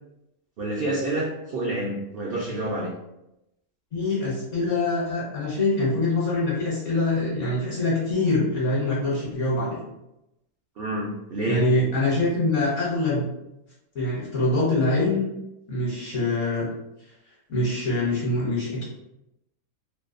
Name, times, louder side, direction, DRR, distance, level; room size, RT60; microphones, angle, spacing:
voice 1, 0.6-2.9 10.8-11.7, right 1 dB, 70° right, -4 dB, 0.5 m, -28 dB
voice 2, 3.9-9.8 11.5-13.2 13.9-15.3 15.7-16.7 17.5-18.8, left 2 dB, 60° left, -6 dB, 1.1 m, -24 dB
2.7 x 2.2 x 2.4 m, 0.87 s
omnidirectional pair, 1.5 m